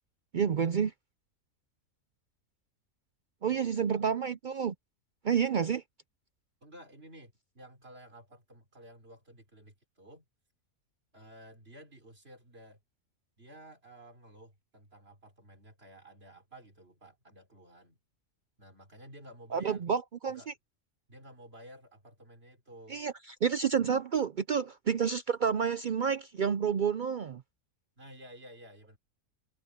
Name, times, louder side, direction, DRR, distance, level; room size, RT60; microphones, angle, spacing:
voice 1, 0.3-0.9 3.4-4.7 5.2-5.8 19.5-20.4 22.9-23.1 23.4-27.4, right 7 dB, 70° right, 0.4 m, -29 dB
voice 2, 3.4-4.1 6.6-10.2 11.1-12.8 13.4-18.0 18.6-19.8 20.3-20.5 21.1-23.0 28.0-29.0, right 1 dB, 45° right, 4.2 m, -53 dB
omnidirectional pair, 1.5 m